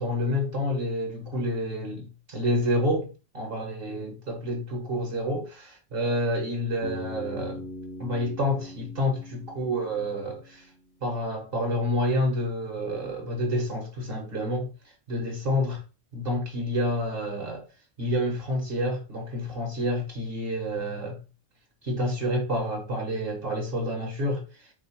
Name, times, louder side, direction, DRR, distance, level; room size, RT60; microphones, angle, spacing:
voice 1, 0.0-7.6 8.0-9.2 9.6-10.7 11.0-14.7 15.1-15.8 16.1-17.6 18.0-21.2 21.8-24.4, left 1 dB, 65° right, 1.5 m, -28 dB
Bass guitar, 6.8-10.8, left 1 dB, 25° left, 0.5 m, -41 dB
3.0 x 3.0 x 4.5 m
omnidirectional pair, 1.1 m